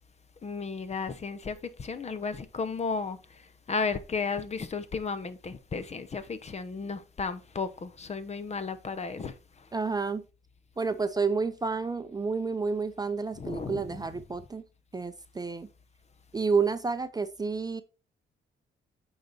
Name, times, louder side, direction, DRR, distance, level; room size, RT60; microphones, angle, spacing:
voice 1, 0.4-3.2 3.7-9.3 13.4-14.0, left 4 dB, 35° left, 0.8 m, -34 dB
voice 2, 9.7-10.2 10.8-14.6 14.9-15.7 16.3-17.8, right 4 dB, 20° right, 0.6 m, -30 dB
8.4 x 4.0 x 4.1 m
cardioid pair, 90°, 20 cm